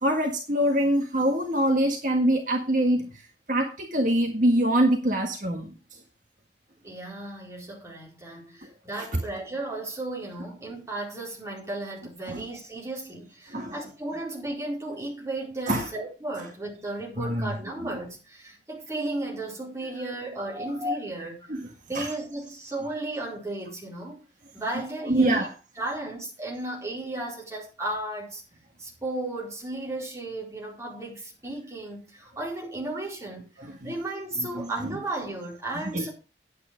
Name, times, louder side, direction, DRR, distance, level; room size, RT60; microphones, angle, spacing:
voice 1, 0.0-3.1 3.5-5.7 12.3-12.4 13.5-13.7 15.7-15.9 17.2-17.5 17.8-18.0 20.5-20.7 21.5-21.7 21.9-22.1 25.0-25.5 33.6-33.9 34.4-34.9 35.9-36.1, right 1 dB, 45° right, 1.6 m, -24 dB
voice 2, 6.8-21.4 21.9-24.2 24.5-25.5 25.8-28.4 28.8-36.1, right 2 dB, 15° right, 4.5 m, -34 dB
9.8 x 8.8 x 5.1 m
head